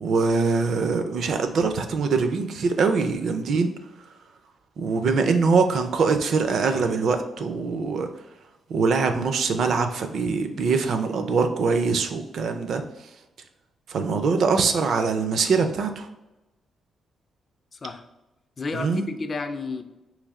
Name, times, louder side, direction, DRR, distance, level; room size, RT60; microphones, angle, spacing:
voice 1, 0.0-3.7 4.8-8.1 8.7-12.8 13.9-16.1 18.7-19.1, right 4 dB, 60° right, 7 dB, 0.4 m, -23 dB
voice 2, 17.7-18.0 18.6-19.8, left 3 dB, 30° left, 8 dB, 0.3 m, -31 dB
3.3 x 3.2 x 3.6 m, 0.99 s
cardioid pair, 135°, 0 cm